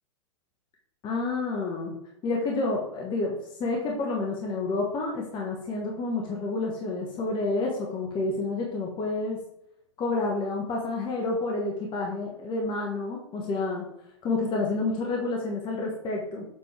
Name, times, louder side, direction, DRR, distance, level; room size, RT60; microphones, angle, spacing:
voice 1, 1.0-2.0 2.2-9.4 10.0-13.9 14.2-16.5, left 3 dB, 30° left, 0 dB, 1.5 m, -29 dB
7.5 x 4.2 x 3.4 m, 0.79 s
hypercardioid pair, 115°, 16 cm